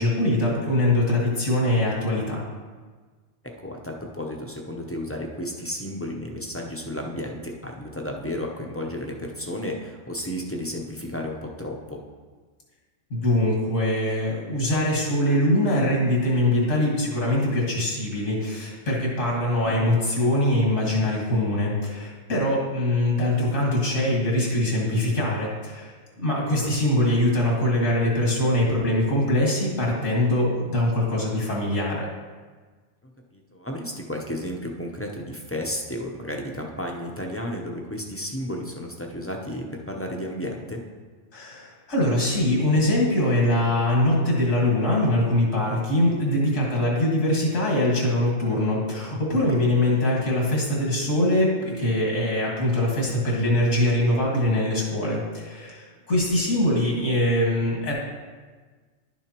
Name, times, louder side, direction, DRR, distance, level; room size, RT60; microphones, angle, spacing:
voice 1, 0.0-2.4 13.1-32.1 41.3-57.9, left 1 dB, 85° left, -3 dB, 2.2 m, -23 dB
voice 2, 3.6-12.0 19.6-19.9 26.5-26.7 33.3-40.8 49.6-49.8, left 1 dB, 15° left, 0 dB, 0.6 m, -33 dB
11.0 x 7.0 x 3.0 m, 1.4 s
omnidirectional pair, 1.3 m